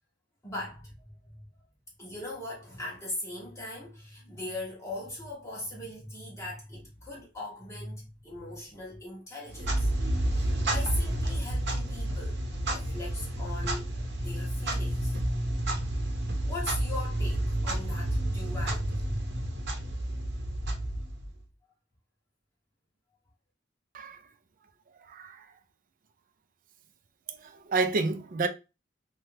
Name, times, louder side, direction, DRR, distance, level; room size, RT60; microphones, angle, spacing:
voice 1, 0.4-1.4 2.0-9.9 10.3-13.9 14.2-15.2 15.7-15.9 16.4-18.9, left 1 dB, 15° left, 0.7 m, -40 dB
Clock, 9.5-21.4, right 1 dB, 65° right, 0.8 m, -30 dB
voice 2, 25.1-25.4 27.3-28.5, right 3 dB, 45° right, 0.4 m, -30 dB
2.8 x 2.2 x 3.1 m
head